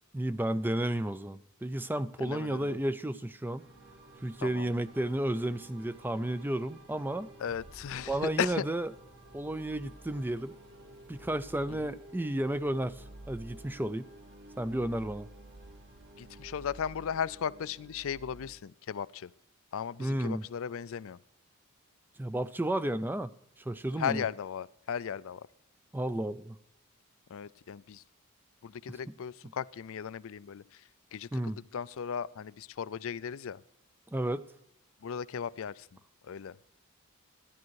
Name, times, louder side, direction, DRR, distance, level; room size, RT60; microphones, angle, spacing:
voice 1, 0.1-3.6 4.2-7.3 8.1-8.9 9.3-10.5 11.1-14.1 14.6-15.3 20.0-20.4 22.2-23.3 23.6-24.2 25.9-26.6 28.9-29.2 29.4-29.5 31.3-31.6 34.1-34.5, right 1 dB, 10° right, 13 dB, 0.4 m, -32 dB
voice 2, 2.2-2.8 4.4-4.7 7.4-8.7 16.2-19.3 19.7-21.2 24.0-25.5 27.3-28.0 28.6-30.6 31.1-31.4 31.7-33.6 35.0-35.9 36.2-36.6, left 7 dB, 60° left, 19 dB, 0.4 m, -36 dB
sound 1, 3.6-18.5, right 1 dB, 50° right, 1.7 m, -51 dB
14.5 x 10.5 x 4.6 m, 0.82 s
head